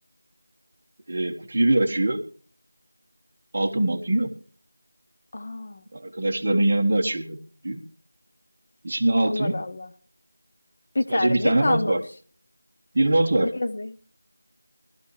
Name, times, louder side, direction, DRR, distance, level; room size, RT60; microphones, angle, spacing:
voice 1, 1.1-2.2 3.5-4.3 5.9-7.4 7.6-7.8 8.8-9.5 11.1-12.0 12.9-13.5, right 1 dB, 30° right, 1.3 m, -22 dB
voice 2, 5.3-5.8 9.3-9.9 10.9-12.0 13.5-14.0, left 2 dB, 30° left, 0.7 m, -28 dB
20.5 x 13.0 x 3.2 m
figure-of-eight pair, 175°, 0 cm